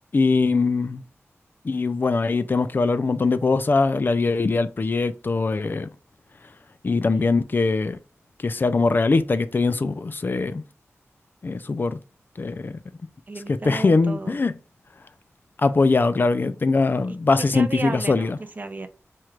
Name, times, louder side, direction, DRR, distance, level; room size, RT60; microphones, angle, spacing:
voice 1, 0.1-1.0 1.6-5.9 6.8-8.0 8.4-10.6 11.4-12.0 12.4-12.8 13.7-14.5 15.6-18.4, left 3 dB, 40° left, 0.3 m, -22 dB
voice 2, 13.3-14.4 17.1-18.9, right 3 dB, 35° right, 0.5 m, -34 dB
4.5 x 2.4 x 3.2 m
wide cardioid pair, 90°, 5 cm